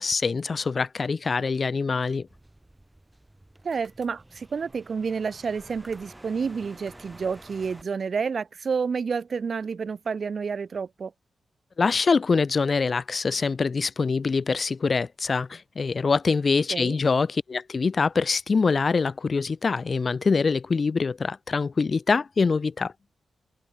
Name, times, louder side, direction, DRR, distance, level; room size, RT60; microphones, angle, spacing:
voice 1, 0.0-2.3 11.8-22.9, left 4 dB, 40° left, 0.7 m, -24 dB
sound 1, 2.3-7.8, right 1 dB, 10° right, 2.8 m, -50 dB
voice 2, 3.6-11.1 16.7-17.0, right 5 dB, 50° right, 1.4 m, -29 dB
wide cardioid pair, 130°, 0 cm